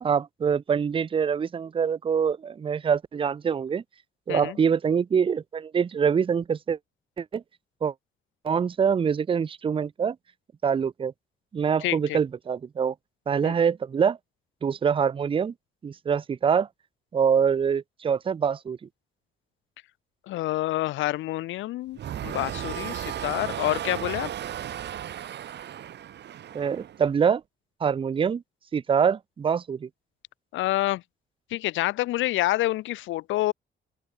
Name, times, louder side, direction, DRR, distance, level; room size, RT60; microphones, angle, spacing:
voice 1, 0.0-3.8 4.3-6.8 7.2-7.4 7.8-7.9 8.4-10.2 10.6-11.1 11.5-12.9 13.3-14.2 14.6-15.5 15.8-16.7 17.1-18.8 26.5-27.4 27.8-28.4 28.7-29.9, right 7 dB, 25° right, 0.4 m, -24 dB
voice 2, 11.8-12.2 13.4-13.5 20.3-24.3 30.5-31.0 31.5-33.5, left 16 dB, 75° left, 0.5 m, -28 dB
sound 1, 22.0-27.1, right 10 dB, 60° right, 1.0 m, -35 dB
open air
cardioid pair, 90°, 20 cm